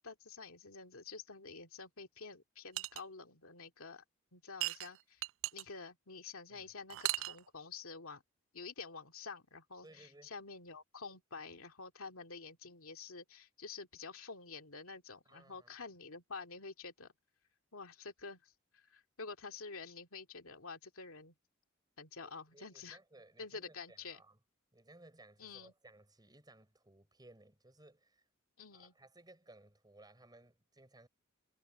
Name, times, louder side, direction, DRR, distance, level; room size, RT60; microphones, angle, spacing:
voice 1, 0.0-4.0 4.3-5.2 5.5-8.2 8.5-17.1 17.7-21.3 22.0-23.0 23.4-24.2 25.4-25.7 28.6-28.9, left 4 dB, 70° left, 2.4 m, -49 dB
sound 1, 2.7-3.0 4.6-5.6 6.9-7.4, right 17 dB, 60° right, 0.3 m, -37 dB
voice 2, 9.8-10.3 15.2-15.7 22.2-24.4 24.7-28.2 28.7-31.1, right 2 dB, 20° right, 4.9 m, -61 dB
head